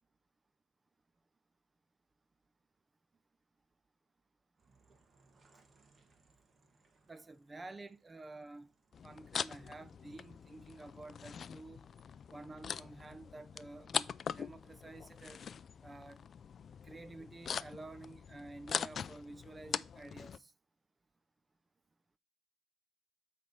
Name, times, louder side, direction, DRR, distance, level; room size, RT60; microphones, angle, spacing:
sound 1, 4.6-13.3, right 3 dB, 40° right, 1.4 m, -72 dB
voice 1, 7.1-8.7 9.0-11.8 12.3-15.4 15.8-16.2 16.8-20.5, right 2 dB, 25° right, 0.5 m, -51 dB
sound 2, 8.9-20.4, left 7 dB, 50° left, 0.3 m, -42 dB
8.3 x 3.4 x 5.5 m
cardioid pair, 90°, 0 cm